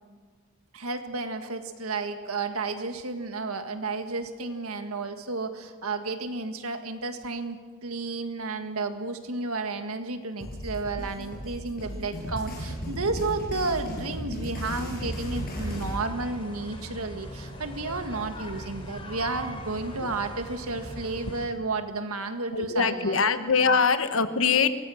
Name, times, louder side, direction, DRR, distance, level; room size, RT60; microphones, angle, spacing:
voice 1, 0.7-23.2 23.6-23.8, right 3 dB, 85° right, 7 dB, 1.8 m, -32 dB
sound 1, 10.4-16.0, equal, 40° left, 6.2 m, -35 dB
sound 2, 15.0-21.5, equal, 25° left, 3.3 m, -40 dB
voice 2, 22.5-24.7, left 5 dB, 65° left, 10 dB, 1.2 m, -23 dB
23.5 x 18.5 x 6.4 m, 1.5 s
head